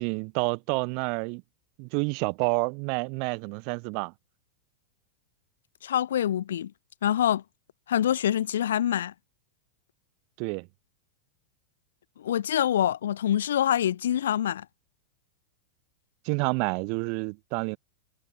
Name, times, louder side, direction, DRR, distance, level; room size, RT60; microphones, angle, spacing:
voice 1, 0.0-1.4 1.8-4.1 10.4-10.7 16.2-17.8, right 38 dB, 45° right, 1.2 m, -29 dB
voice 2, 5.8-6.7 7.0-7.4 7.9-9.1 12.2-14.6, left 10 dB, 60° left, 0.4 m, -25 dB
figure-of-eight pair, 90°, 0 cm